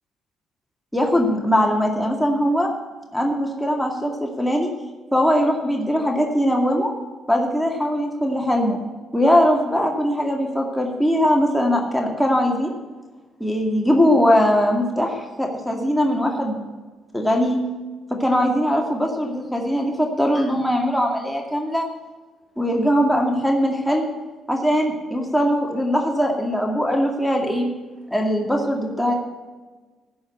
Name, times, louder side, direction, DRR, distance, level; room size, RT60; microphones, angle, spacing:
voice 1, 0.9-2.7 3.1-4.7 5.1-6.9 7.3-8.8 9.1-12.7 13.4-16.6 17.1-17.6 18.2-21.9 22.6-24.1 24.5-27.7 28.1-29.1, equal, 5° left, 0 dB, 2.2 m, -20 dB
15.5 x 5.4 x 8.4 m, 1.3 s
cardioid pair, 90°, 0 cm